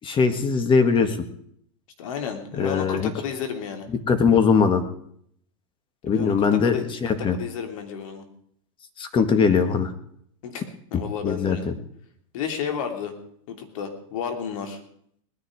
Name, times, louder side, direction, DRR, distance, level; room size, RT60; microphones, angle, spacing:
voice 1, 0.0-1.2 2.6-3.1 4.1-4.8 6.1-7.4 9.0-9.9 11.2-11.6, left 5 dB, 30° left, 8 dB, 1.9 m, -20 dB
voice 2, 2.0-3.9 6.0-8.2 10.4-10.6 10.9-11.7 12.3-13.1 13.5-14.8, left 7 dB, 70° left, 5 dB, 3.0 m, -32 dB
20.0 x 10.5 x 4.9 m, 0.67 s
hypercardioid pair, 115°, 18 cm